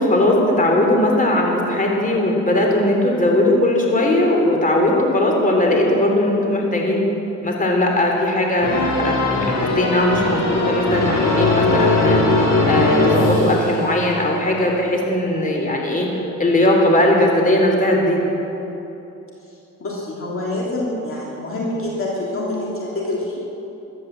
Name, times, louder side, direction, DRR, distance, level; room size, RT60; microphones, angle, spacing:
voice 1, 0.0-7.0 7.4-12.2 12.7-16.1 16.4-18.2, left 1 dB, 25° left, 0 dB, 3.4 m, -18 dB
sound 1, 8.6-14.3, left 2 dB, 65° left, 3.2 m, -19 dB
voice 2, 19.8-23.4, left 1 dB, 45° left, -4 dB, 3.0 m, -26 dB
15.0 x 12.0 x 7.6 m, 3.0 s
cardioid pair, 90°, 30 cm